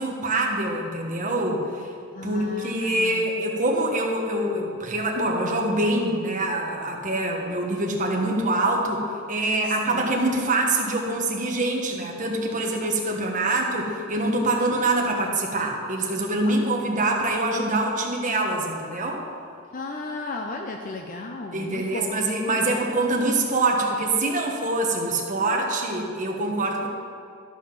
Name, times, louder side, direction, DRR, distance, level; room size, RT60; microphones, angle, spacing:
voice 1, 0.0-1.9 2.2-19.2 21.5-26.9, right 2 dB, 40° right, 0 dB, 1.4 m, -25 dB
voice 2, 2.1-3.3 9.9-10.1 14.5-14.6 16.4-16.7 19.7-22.1, left 3 dB, 40° left, 2 dB, 0.6 m, -34 dB
12.5 x 5.8 x 5.9 m, 2.4 s
head